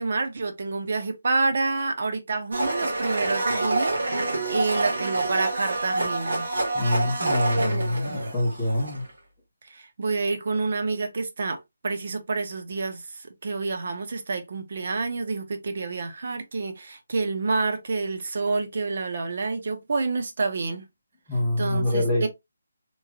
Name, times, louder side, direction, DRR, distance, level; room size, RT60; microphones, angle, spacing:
voice 1, 0.0-6.5 9.7-11.6 11.8-20.8 21.6-22.3, right 3 dB, 40° right, 0.6 m, -28 dB
Domestic sounds home sounds, 2.5-9.1, right 2 dB, 60° right, 1.0 m, -27 dB
voice 2, 6.7-9.0 21.3-22.3, left 1 dB, ahead, 0.9 m, -25 dB
3.0 x 2.8 x 2.3 m
hypercardioid pair, 180°, 0 cm